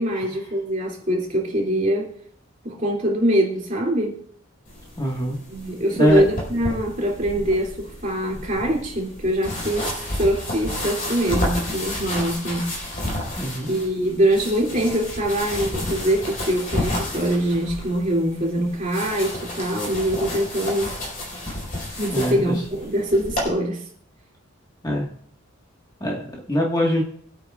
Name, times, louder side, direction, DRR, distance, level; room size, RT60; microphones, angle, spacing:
voice 1, 0.0-2.1 2.6-4.2 5.5-12.7 13.7-20.9 22.0-23.9, right 1 dB, 35° right, -2 dB, 2.7 m, -23 dB
sound 1, 4.7-23.5, left 1 dB, 40° left, 5.1 m, -31 dB
voice 2, 5.0-5.4 6.0-6.2 13.4-13.7 22.1-22.5 24.8-25.1 26.0-26.2 26.5-27.0, equal, 20° left, -1 dB, 1.6 m, -22 dB
23.5 x 8.9 x 2.4 m, 0.62 s
head